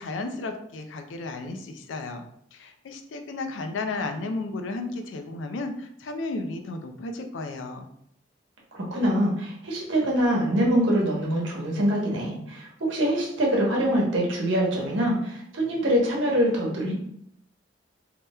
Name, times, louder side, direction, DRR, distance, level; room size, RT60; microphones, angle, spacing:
voice 1, 0.0-2.2 2.5-7.9, left 3 dB, 85° left, 6 dB, 0.4 m, -33 dB
voice 2, 8.7-16.9, equal, 80° right, -2 dB, 0.9 m, -24 dB
2.8 x 2.1 x 3.4 m, 0.71 s
head